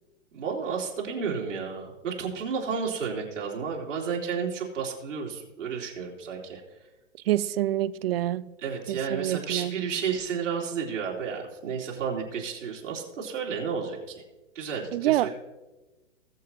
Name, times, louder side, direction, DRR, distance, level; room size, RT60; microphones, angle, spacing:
voice 1, 0.3-6.6 8.6-14.2 14.6-15.3, right 6 dB, 75° right, 3.6 m, -32 dB
voice 2, 7.3-8.4 8.9-9.8 14.9-15.3, right 14 dB, 50° right, 0.5 m, -26 dB
20.5 x 7.4 x 3.0 m
hypercardioid pair, 115°, 38 cm